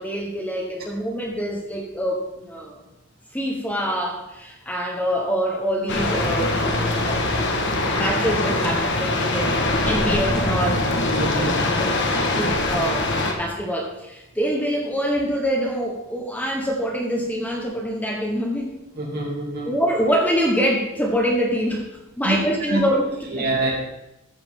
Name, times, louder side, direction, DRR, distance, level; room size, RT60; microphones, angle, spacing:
voice 1, 0.0-2.8 3.3-7.3 7.9-9.5 9.8-11.5 11.7-12.0 12.4-18.7 19.7-21.8 22.2-23.4, equal, 10° left, 0 dB, 1.3 m, -25 dB
sound 1, 5.9-13.3, left 2 dB, 55° left, 1.6 m, -22 dB
voice 2, 19.0-19.7 22.2-22.4 22.7-22.8 23.3-23.7, right 2 dB, 45° right, -2 dB, 3.0 m, -25 dB
14.0 x 8.2 x 3.8 m, 0.95 s
head